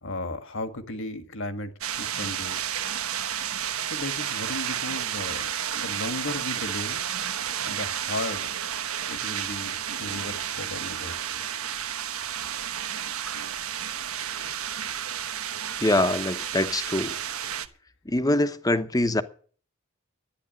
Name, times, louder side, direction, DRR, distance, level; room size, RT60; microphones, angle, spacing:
voice 1, 0.0-2.6 3.8-7.1 7.6-8.5 9.1-11.4, left 2 dB, 65° left, 1.7 m, -35 dB
sound 1, 1.8-17.7, right 9 dB, 85° right, 1.1 m, -31 dB
voice 2, 15.8-17.2 18.0-19.2, left 1 dB, 15° left, 1.0 m, -24 dB
12.5 x 10.0 x 7.7 m
head